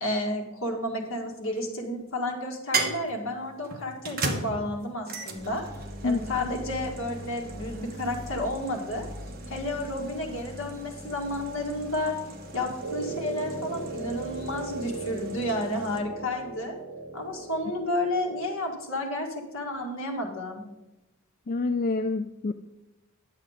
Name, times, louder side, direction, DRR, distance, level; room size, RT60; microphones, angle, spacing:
voice 1, 0.0-5.7 6.0-9.1 9.5-12.1 12.5-16.8 17.1-20.6, left 1 dB, 65° left, 1 dB, 1.9 m, -31 dB
sound 1, 1.0-1.7 2.7-16.0, right 3 dB, 45° right, 1.2 m, -37 dB
sound 2, 5.4-13.1, left 1 dB, 5° left, 2.1 m, -45 dB
voice 2, 6.0-6.5 21.5-22.5, left 3 dB, 40° left, 8 dB, 0.3 m, -28 dB
sound 3, 12.8-18.9, right 3 dB, 65° right, 1.6 m, -37 dB
10.0 x 7.4 x 5.0 m, 0.99 s
head